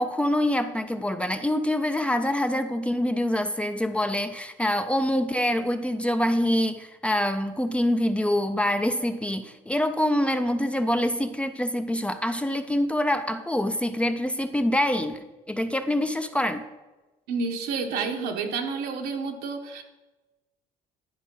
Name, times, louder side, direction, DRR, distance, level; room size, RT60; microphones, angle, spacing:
voice 1, 0.0-16.6, left 1 dB, 5° left, 9 dB, 0.4 m, -25 dB
voice 2, 17.3-19.8, right 4 dB, 80° right, 3 dB, 1.2 m, -29 dB
11.0 x 5.0 x 5.5 m, 1.1 s
cardioid pair, 120°, 16 cm